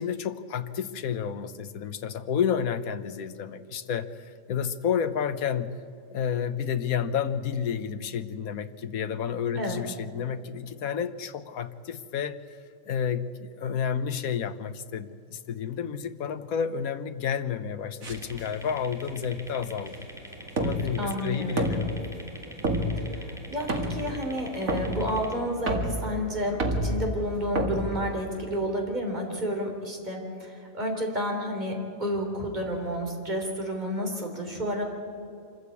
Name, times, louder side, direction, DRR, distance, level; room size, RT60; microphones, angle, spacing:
voice 1, 0.0-4.1 4.5-5.7 6.1-12.4 12.8-20.1 20.6-22.0, left 7 dB, 85° left, 11 dB, 1.4 m, -30 dB
sound 1, 18.0-28.7, right 1 dB, 80° right, 2.3 m, -32 dB
sound 2, 18.1-25.3, equal, ahead, 2.4 m, -46 dB
voice 2, 21.0-21.8 23.1-34.8, equal, 30° right, 1 dB, 3.8 m, -31 dB
26.0 x 14.5 x 8.4 m, 2.5 s
omnidirectional pair, 1.4 m